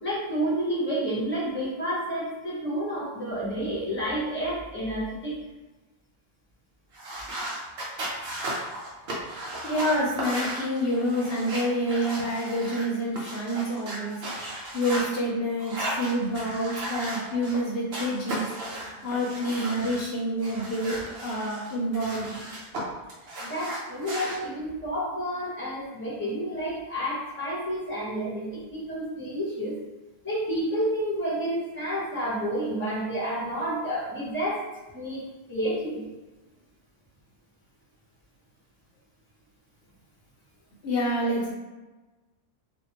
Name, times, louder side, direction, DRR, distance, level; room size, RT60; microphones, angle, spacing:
voice 1, 0.0-5.4 23.4-29.8 30.2-34.6 34.9-35.2 35.5-36.1, equal, 10° left, -7 dB, 0.9 m, -30 dB
sound 1, 6.9-15.1 15.6-17.6 17.9-20.0 20.4-22.8 23.1-24.4, right 1 dB, 75° right, 1.0 m, -35 dB
voice 2, 9.6-18.5 19.0-22.4 40.8-41.5, equal, 70° left, -4 dB, 0.8 m, -28 dB
2.6 x 2.5 x 2.8 m, 1.2 s
omnidirectional pair, 1.1 m